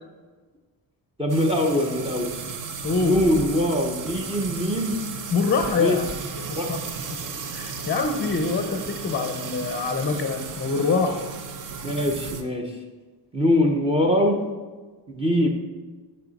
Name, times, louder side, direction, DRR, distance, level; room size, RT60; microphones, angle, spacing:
voice 1, 1.2-2.3 3.0-5.0 5.8-6.0 6.6-6.7 11.8-12.8 13.3-14.4 15.1-15.5, left 1 dB, 15° right, 3 dB, 0.6 m, -22 dB
sound 1, 1.3-12.4, right 5 dB, 45° right, 0.7 m, -35 dB
voice 2, 2.8-3.2 5.3-6.1 6.5-6.8 7.1-7.2 7.5-11.2, left 4 dB, 25° left, 6 dB, 0.6 m, -25 dB
11.0 x 5.5 x 4.0 m, 1.4 s
cardioid pair, 165°, 45 cm